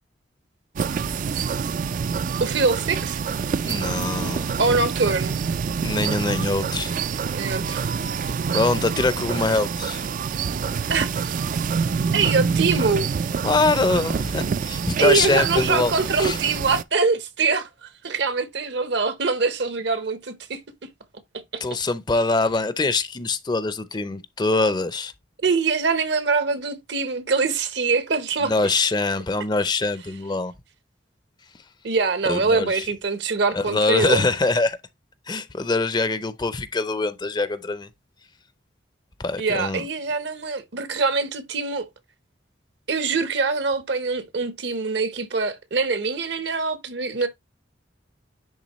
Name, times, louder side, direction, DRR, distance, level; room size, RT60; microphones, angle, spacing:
sound 1, 0.8-16.8, right 6 dB, 45° right, 0.3 m, -26 dB
voice 1, 2.4-3.2 4.6-5.4 7.3-7.8 10.9-11.1 12.1-13.1 15.0-20.6 21.5-21.6 25.4-28.8 31.8-34.2 39.4-41.9 42.9-47.3, right 4 dB, 65° right, 0.9 m, -23 dB
voice 2, 3.6-4.6 5.8-6.9 8.2-10.0 13.4-16.4 21.6-25.1 28.4-30.5 32.3-32.8 33.5-34.8 35.3-37.9 39.2-39.8, left 3 dB, 25° left, 0.5 m, -24 dB
10.0 x 3.6 x 3.0 m
head